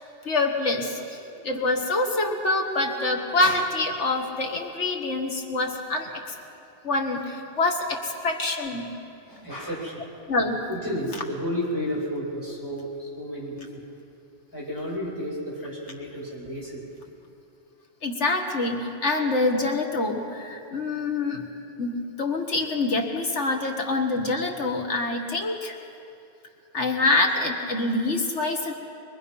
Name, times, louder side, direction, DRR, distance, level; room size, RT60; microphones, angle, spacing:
voice 1, 0.3-1.2 1.4-6.2 6.8-8.9 10.3-10.7 11.1-11.2 18.0-21.4 21.8-25.8 26.7-28.7, left 2 dB, 80° left, 2 dB, 1.8 m, -26 dB
voice 2, 9.3-10.1 10.7-13.8 14.5-16.8, equal, 15° right, -5 dB, 7.5 m, -32 dB
24.5 x 23.0 x 5.6 m, 2.7 s
omnidirectional pair, 1.2 m